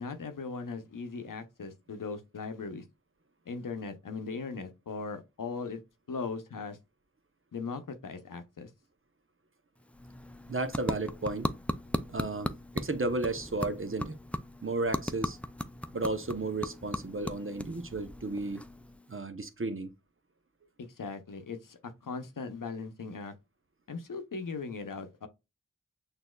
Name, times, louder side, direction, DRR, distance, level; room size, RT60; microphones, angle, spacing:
voice 1, 0.0-2.8 3.5-5.8 6.1-6.8 7.5-8.7 20.8-23.3 23.9-25.3, left 4 dB, 80° left, 0.7 m, -39 dB
sound 1, 9.8-19.2, left 1 dB, 5° left, 0.4 m, -38 dB
voice 2, 10.5-11.5 12.1-14.2 14.6-15.4 15.9-18.6 19.1-19.9, right 2 dB, 40° right, 0.8 m, -33 dB
6.2 x 2.7 x 2.3 m
wide cardioid pair, 45°, 32 cm